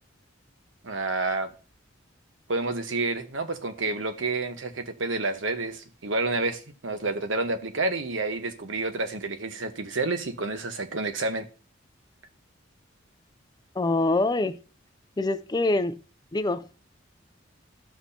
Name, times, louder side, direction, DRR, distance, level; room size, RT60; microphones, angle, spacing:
voice 1, 0.8-1.5 2.5-11.5, right 3 dB, 80° right, 1.2 m, -29 dB
voice 2, 13.8-14.6 15.2-16.0 16.3-16.7, left 2 dB, 20° left, 0.4 m, -25 dB
13.5 x 6.1 x 2.8 m
head